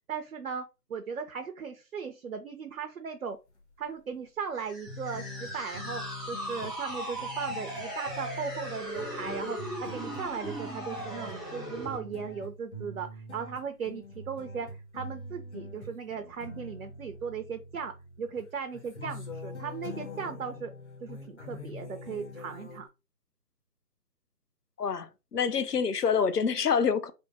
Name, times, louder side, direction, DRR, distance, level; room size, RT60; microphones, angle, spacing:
voice 1, 0.1-0.6 0.9-3.4 3.8-17.9 18.2-20.7 21.0-22.9, right 6 dB, 60° right, 0.6 m, -37 dB
sound 1, 3.6-3.9 4.1-4.2 4.9-22.9, left 1 dB, 45° left, 0.9 m, -44 dB
sound 2, 4.6-12.0, equal, ahead, 0.5 m, -38 dB
voice 2, 24.8-27.1, left 6 dB, 70° left, 0.7 m, -27 dB
3.5 x 2.1 x 3.9 m
figure-of-eight pair, 155°, 48 cm